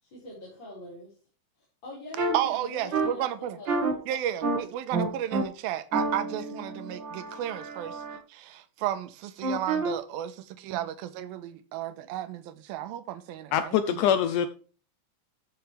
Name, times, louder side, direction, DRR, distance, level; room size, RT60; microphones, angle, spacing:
voice 1, 0.0-1.1 1.8-4.0, left 1 dB, 30° left, 5.2 m, -43 dB
sound 1, 2.2-2.3 2.9-3.1 3.7-3.9 4.4-4.6 4.9-5.4 5.9-8.2 9.4-9.9, right 3 dB, 50° right, 1.4 m, -29 dB
voice 2, 2.3-3.6 4.1-8.0 8.3-12.4 12.7-14.1, right 11 dB, 80° right, 2.6 m, -33 dB
voice 3, 13.5-14.5, left 9 dB, 85° left, 1.8 m, -24 dB
14.5 x 6.3 x 3.3 m
omnidirectional pair, 4.5 m